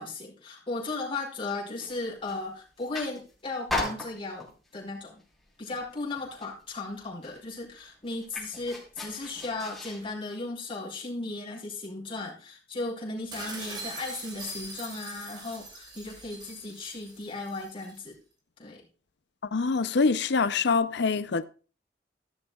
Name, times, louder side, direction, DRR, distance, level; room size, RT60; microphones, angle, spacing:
voice 1, 0.0-5.2 5.6-18.2 18.6-18.8, left 3 dB, 30° left, 4.8 m, -36 dB
sound 1, 1.8-2.4 2.8-3.3 3.7-4.7 5.2-5.5 5.7-6.6 6.9-7.0 7.2-10.1, left 2 dB, ahead, 4.5 m, -36 dB
sound 2, 13.3-18.0, right 2 dB, 25° right, 2.9 m, -42 dB
voice 2, 19.5-21.4, left 4 dB, 65° left, 0.6 m, -25 dB
15.5 x 12.5 x 2.4 m
head